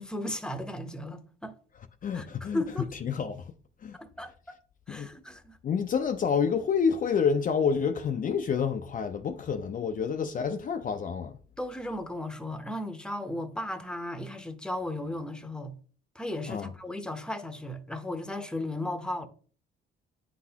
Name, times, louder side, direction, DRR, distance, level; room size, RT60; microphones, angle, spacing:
voice 1, 0.0-1.5 2.1-2.9 3.9-4.6 4.9-5.6 11.6-15.7 16.1-19.3, left 1 dB, 5° left, 0.8 m, -35 dB
voice 2, 2.0-2.6 3.0-3.4 3.8-4.0 4.9-5.1 5.6-11.4 16.5-16.7, left 6 dB, 40° left, 0.5 m, -28 dB
9.2 x 4.0 x 2.8 m
cardioid pair, 85°, 21 cm